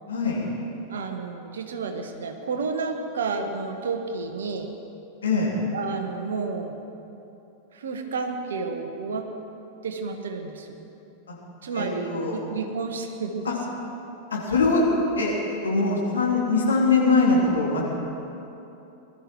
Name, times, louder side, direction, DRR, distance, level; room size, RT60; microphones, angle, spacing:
voice 1, 0.1-0.5 5.2-5.6 11.7-12.4 13.4-13.5 14.3-14.9 15.2-15.3 15.6-17.8, left 3 dB, 70° left, -4 dB, 3.5 m, -22 dB
voice 2, 0.9-4.7 5.7-6.8 7.7-9.3 9.8-10.7 11.6-13.5, right 4 dB, 65° right, 5 dB, 1.4 m, -31 dB
20.0 x 12.5 x 4.7 m, 2.9 s
figure-of-eight pair, 90°, 0 cm